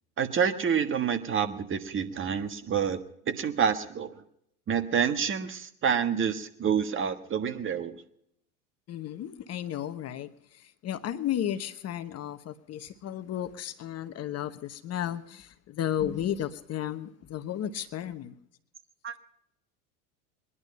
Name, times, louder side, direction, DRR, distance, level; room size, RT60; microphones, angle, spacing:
voice 1, 0.2-3.0 3.3-4.2 4.7-8.0 19.0-19.1, right 7 dB, 30° right, 10 dB, 1.5 m, -28 dB
voice 2, 8.9-18.3, left 10 dB, 35° left, 11 dB, 1.1 m, -34 dB
22.0 x 11.5 x 5.4 m, 0.72 s
hypercardioid pair, 100°, 43 cm